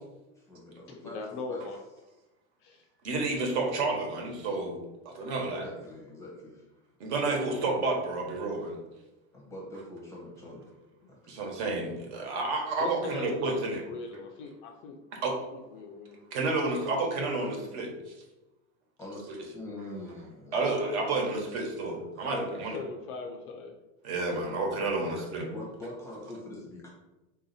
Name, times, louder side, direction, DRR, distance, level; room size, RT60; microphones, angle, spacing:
voice 1, 0.4-1.2 1.5-1.6 5.3-6.6 9.3-10.7 11.1-11.3 19.0-20.8 21.1-21.2 21.9-22.3 25.0-26.9, left 1 dB, 5° left, -4 dB, 0.7 m, -44 dB
voice 2, 1.1-1.8 2.6-2.8 12.8-15.0 15.5-16.2 22.3-23.7, left 4 dB, 40° left, 3 dB, 0.4 m, -39 dB
voice 3, 3.0-4.8 5.0-5.6 7.0-8.8 11.3-13.8 15.2-15.3 16.3-18.1 20.5-22.8 24.0-25.5, right 3 dB, 55° right, 1 dB, 1.3 m, -30 dB
3.9 x 2.7 x 4.0 m, 1.0 s
supercardioid pair, 155°, 40 cm